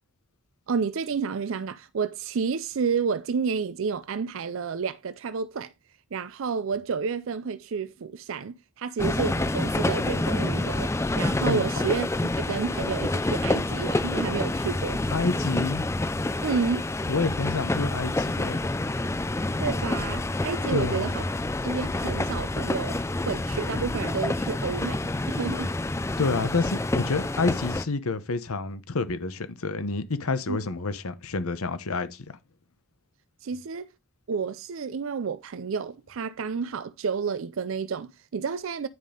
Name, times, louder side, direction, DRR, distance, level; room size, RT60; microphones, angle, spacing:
voice 1, 0.7-5.7 6.1-15.0 16.4-16.9 19.6-21.2 21.6-23.0 23.2-25.0 25.3-25.7 30.5-30.6 33.4-33.9 34.3-38.9, right 5 dB, 65° right, 0.4 m, -30 dB
sound 1, 9.0-27.9, left 2 dB, 15° left, 0.3 m, -28 dB
voice 2, 15.1-15.8 17.1-18.6 20.7-21.1 26.2-32.4, left 3 dB, 80° left, 0.9 m, -28 dB
9.3 x 5.3 x 3.7 m
head